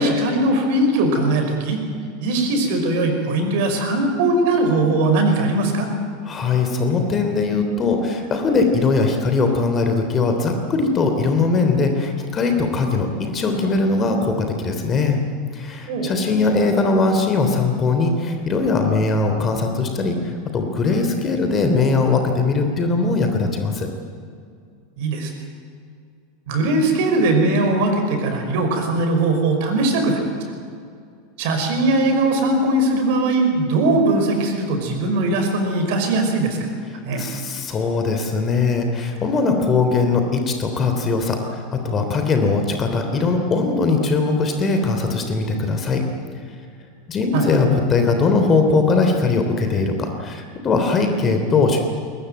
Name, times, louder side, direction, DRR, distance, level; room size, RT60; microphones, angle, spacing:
voice 1, 0.0-1.8 2.2-5.9 15.9-16.2 25.0-25.3 26.5-30.2 31.4-36.6 37.0-37.2 47.3-47.5, right 2 dB, 55° right, 5 dB, 5.3 m, -20 dB
voice 2, 6.2-15.2 15.5-23.9 36.9-46.0 47.1-51.8, left 3 dB, 25° left, 5 dB, 3.2 m, -20 dB
21.5 x 21.5 x 9.3 m, 2.3 s
figure-of-eight pair, 80°, 0 cm